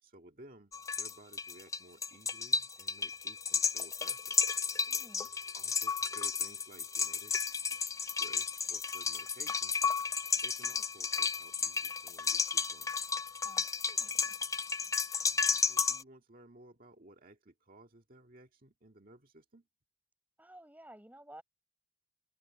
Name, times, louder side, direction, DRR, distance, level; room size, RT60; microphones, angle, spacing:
voice 1, 0.0-4.4 5.5-7.6 8.0-9.8 10.4-12.9 15.2-19.6, right 1 dB, 50° right, 1.9 m, -57 dB
sound 1, 0.7-16.0, left 5 dB, 15° left, 0.5 m, -33 dB
voice 2, 4.9-5.3 13.4-14.4 20.4-21.4, right 1 dB, 10° right, 5.4 m, -55 dB
head